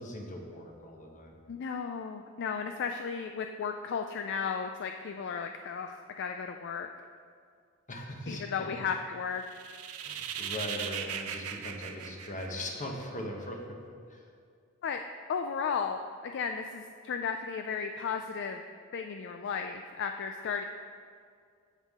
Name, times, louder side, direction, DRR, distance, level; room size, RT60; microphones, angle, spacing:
voice 1, 0.0-1.4 7.9-8.7 10.0-13.8 14.1-14.2, left 1 dB, 35° left, 1 dB, 1.1 m, -40 dB
voice 2, 1.5-6.9 8.3-9.4 14.8-15.0 15.3-18.6 18.9-20.6, left 6 dB, 55° left, 5 dB, 0.4 m, -34 dB
sound 1, 9.4-13.0, right 8 dB, 70° right, 0.6 m, -38 dB
15.5 x 5.5 x 3.6 m, 2.2 s
head